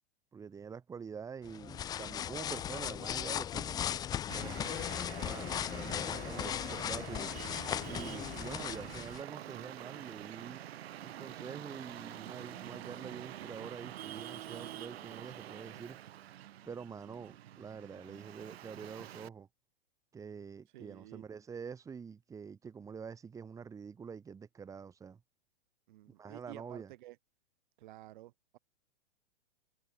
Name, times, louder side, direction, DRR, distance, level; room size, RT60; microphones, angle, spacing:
voice 1, 0.3-3.9 4.3-4.7 5.1-7.3 7.8-10.6 11.0-16.0 16.6-19.5 20.1-25.2 26.1-26.9, right 6 dB, 10° right, 3.0 m, -46 dB
sound 1, 1.4-9.2, left 10 dB, 10° left, 0.9 m, -37 dB
Traffic noise roadway noise, 4.3-19.3, right 12 dB, 60° right, 1.3 m, -47 dB
voice 2, 20.7-21.2 25.9-27.2 27.8-28.6, right 16 dB, 45° right, 2.8 m, -52 dB
hypercardioid pair, 165°, 34 cm